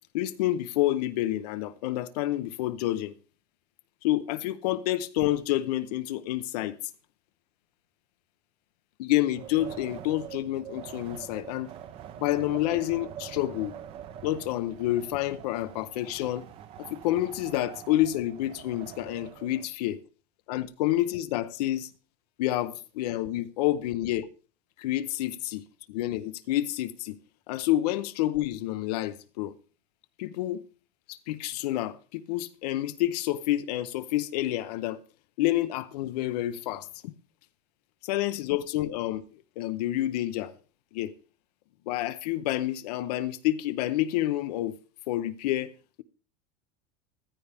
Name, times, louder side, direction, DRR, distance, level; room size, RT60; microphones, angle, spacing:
voice 1, 0.1-3.1 4.0-6.8 9.0-11.7 12.2-13.8 14.2-16.5 16.8-20.0 20.5-21.9 22.4-24.3 24.8-27.2 27.5-29.6 30.2-30.6 31.1-35.0 35.4-37.1 38.0-39.2 39.6-40.5 40.9-41.1 41.9-44.7 45.1-45.7, left 14 dB, 70° left, 0.7 m, -29 dB
Wind, 9.3-19.6, right 10 dB, 25° right, 0.6 m, -44 dB
14.5 x 13.5 x 3.4 m
supercardioid pair, 175°, 21 cm